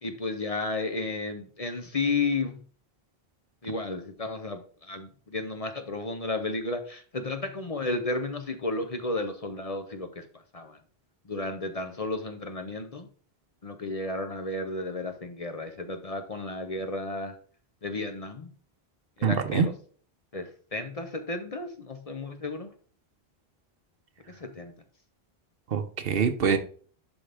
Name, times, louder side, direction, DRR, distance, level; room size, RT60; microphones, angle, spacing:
voice 1, 0.0-2.6 3.6-10.3 10.5-10.8 11.3-13.1 13.6-17.4 17.8-18.5 19.2-19.7 20.3-22.7 24.3-24.7, left 3 dB, 40° left, 0.8 m, -33 dB
voice 2, 19.2-19.7 25.7-26.6, right 6 dB, 65° right, 1.0 m, -24 dB
11.0 x 3.8 x 3.4 m
omnidirectional pair, 1.1 m